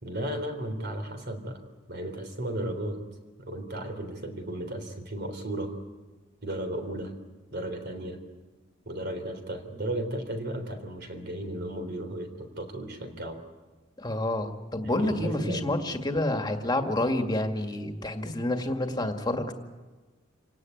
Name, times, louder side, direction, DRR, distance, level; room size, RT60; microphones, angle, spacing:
voice 1, 0.0-1.6 1.9-3.0 3.4-5.7 6.4-7.1 7.5-8.2 8.9-13.4 14.8-15.8, right 1 dB, 55° right, 6 dB, 3.6 m, -34 dB
voice 2, 14.0-19.5, left 1 dB, 20° left, 5 dB, 2.0 m, -28 dB
27.5 x 18.0 x 9.4 m, 1.3 s
head